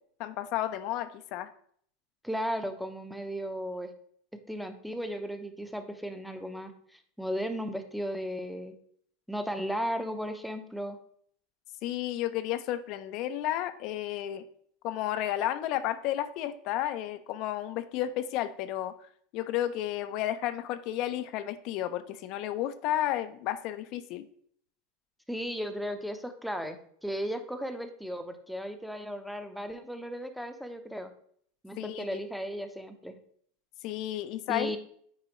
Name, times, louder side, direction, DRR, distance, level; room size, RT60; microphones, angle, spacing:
voice 1, 0.2-1.5 11.8-14.4 14.8-18.9 19.3-24.3 31.8-32.2 33.8-34.8, left 12 dB, 55° left, 11 dB, 0.5 m, -32 dB
voice 2, 2.2-3.9 4.5-8.7 9.3-11.0 25.3-26.8 27.0-31.1 31.6-33.2 34.5-34.8, equal, ahead, 7 dB, 0.8 m, -35 dB
8.4 x 4.8 x 3.1 m, 0.62 s
supercardioid pair, 110°, 0 cm